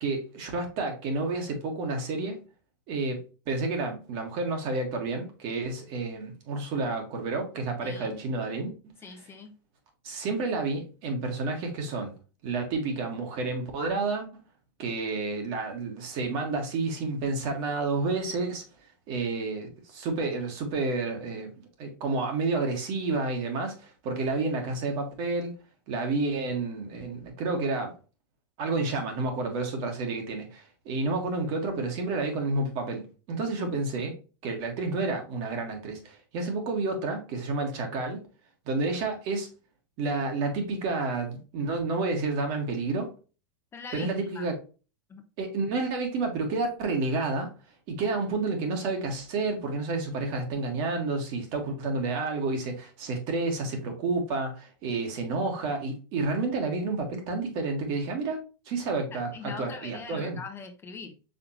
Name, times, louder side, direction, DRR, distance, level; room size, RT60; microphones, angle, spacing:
voice 1, 0.0-2.4 2.9-8.7 10.0-12.1 12.4-14.4 14.8-18.6 19.1-21.5 21.8-25.5 25.9-27.9 28.6-34.1 34.4-38.2 38.7-39.5 40.0-43.1 43.9-44.6 45.4-47.5 47.9-58.4 58.7-60.4, right 3 dB, 55° right, 1.7 m, -30 dB
voice 2, 7.8-8.2 9.0-9.6 33.6-33.8 43.7-44.5 45.1-45.3 59.1-61.1, left 5 dB, 20° left, 0.7 m, -42 dB
5.1 x 3.6 x 2.9 m
hypercardioid pair, 110°, 11 cm